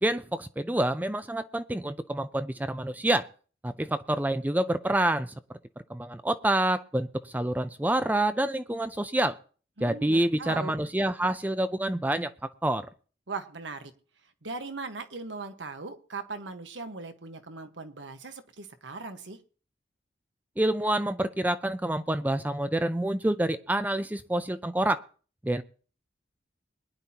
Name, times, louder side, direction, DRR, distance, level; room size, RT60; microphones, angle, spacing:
voice 1, 0.0-3.3 3.6-5.3 5.9-9.4 9.8-12.9 20.6-25.0 25.4-25.6, right 1 dB, 10° right, 11 dB, 0.5 m, -27 dB
voice 2, 9.8-10.7 13.3-13.9 14.4-19.4, right 3 dB, 85° right, 8 dB, 1.4 m, -39 dB
21.5 x 10.5 x 2.9 m, 0.40 s
head